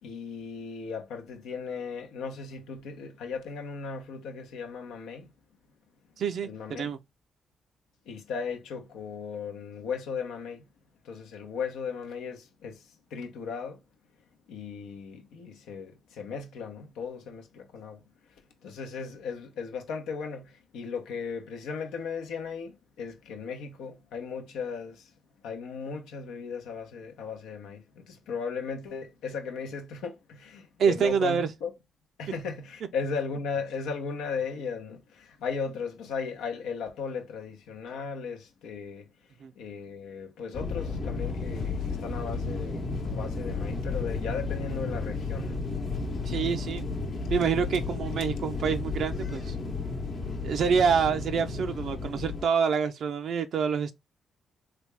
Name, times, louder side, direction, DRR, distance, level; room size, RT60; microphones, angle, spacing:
voice 1, 0.0-5.3 6.4-6.9 8.1-10.6 11.0-12.8 13.1-13.8 14.5-18.0 18.6-25.1 25.4-31.7 32.2-39.1 39.6-45.6, left 5 dB, 85° left, 0.7 m, -36 dB
voice 2, 6.2-7.0 30.8-31.5 39.4-39.5 46.3-46.8 47.3-49.6 50.4-53.9, right 6 dB, 70° right, 0.4 m, -27 dB
sound 1, 40.5-52.5, left 4 dB, 55° left, 0.9 m, -33 dB
3.4 x 2.3 x 3.2 m
supercardioid pair, 60°, 0 cm